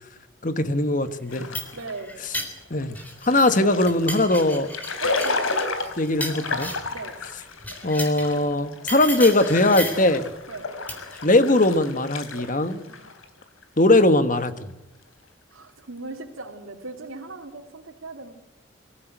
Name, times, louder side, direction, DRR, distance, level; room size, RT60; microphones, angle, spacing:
voice 1, 0.4-1.6 2.7-2.9 3.3-4.7 6.0-6.7 7.8-10.3 11.2-12.8 13.8-14.5, left 2 dB, 40° left, 11 dB, 1.4 m, -20 dB
sound 1, 1.2-3.6 3.9-7.0 7.6-8.4 8.9-10.1 10.9-11.2, left 1 dB, 10° left, 3.6 m, -34 dB
sound 2, 1.3-13.9, left 3 dB, 85° left, 3.5 m, -32 dB
voice 2, 1.7-2.1 5.0-5.6 6.9-7.2 10.5-10.7 12.9-13.1 15.5-18.3, right 3 dB, 90° right, -2 dB, 2.7 m, -37 dB
24.5 x 14.5 x 9.2 m, 0.98 s
head